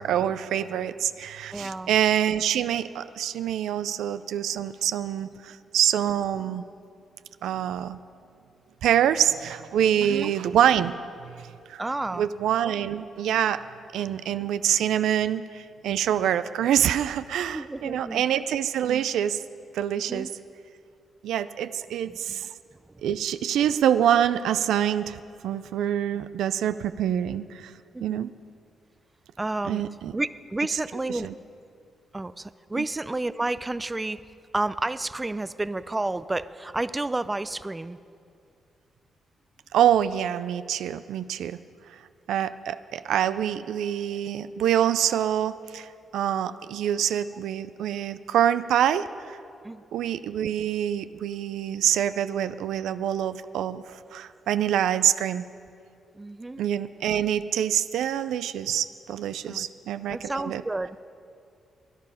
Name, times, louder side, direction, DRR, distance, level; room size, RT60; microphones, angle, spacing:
voice 1, 0.0-6.6 7.4-8.0 8.8-10.9 11.2-11.8 12.1-13.6 13.9-19.4 19.7-20.3 21.2-22.5 23.0-27.7 28.0-28.3 29.7-30.1 31.2-31.3 32.8-32.9 39.7-41.6 42.3-49.4 49.9-55.5 56.6-60.6, right 10 dB, 85° right, 13 dB, 0.4 m, -26 dB
voice 2, 1.5-1.9 10.0-10.3 11.8-12.3 17.5-18.2 19.9-20.3 22.1-22.4 27.9-28.3 29.4-29.8 30.1-31.3 32.1-34.2 34.5-38.0 49.6-49.8 56.2-56.6 59.5-59.7 60.1-60.9, right 2 dB, 20° right, 15 dB, 0.4 m, -31 dB
16.5 x 10.5 x 5.6 m, 2.5 s
cardioid pair, 70°, 0 cm